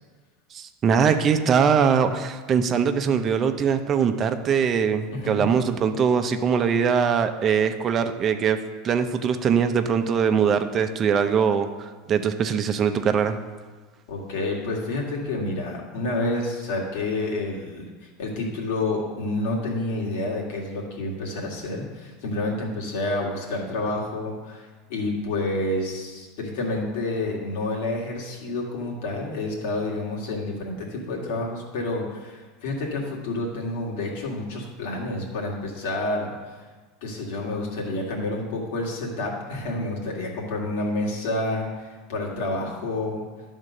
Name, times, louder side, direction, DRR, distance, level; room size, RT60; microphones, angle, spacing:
voice 1, 0.5-8.6 8.8-13.4, right 7 dB, 30° right, 8 dB, 0.6 m, -22 dB
voice 2, 5.1-5.5 14.1-36.6 37.0-43.2, left 2 dB, 75° left, -2 dB, 2.1 m, -29 dB
10.5 x 3.7 x 6.6 m, 1.4 s
supercardioid pair, 135°, 0 cm